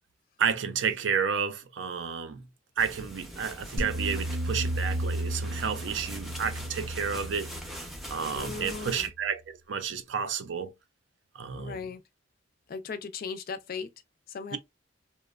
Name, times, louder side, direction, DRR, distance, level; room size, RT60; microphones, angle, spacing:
voice 1, 0.4-2.5 2.8-7.5 8.1-10.7 11.3-11.8 14.5-14.6, right 6 dB, 70° right, 0.5 m, -31 dB
sound 1, 2.8-9.1, equal, ahead, 0.5 m, -42 dB
sound 2, 3.8-9.0, right 1 dB, 85° right, 0.9 m, -34 dB
voice 2, 8.3-9.1 11.5-12.0 12.7-13.9 14.3-14.6, left 5 dB, 50° left, 0.4 m, -37 dB
2.9 x 2.1 x 2.3 m
head